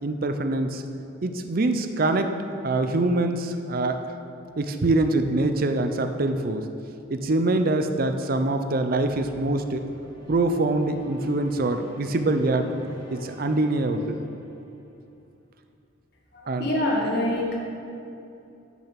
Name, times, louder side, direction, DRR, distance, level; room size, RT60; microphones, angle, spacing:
voice 1, 0.0-0.8 1.2-2.3 2.6-4.0 4.6-6.7 7.1-9.9 10.3-12.7 13.1-14.2 16.5-16.7, right 2 dB, 50° right, 7 dB, 0.5 m, -24 dB
sound 1, 8.9-15.3, equal, 20° left, 1.1 m, -46 dB
voice 2, 16.3-17.5, left 1 dB, 55° left, -2 dB, 1.9 m, -25 dB
8.9 x 6.8 x 5.8 m, 2.7 s
head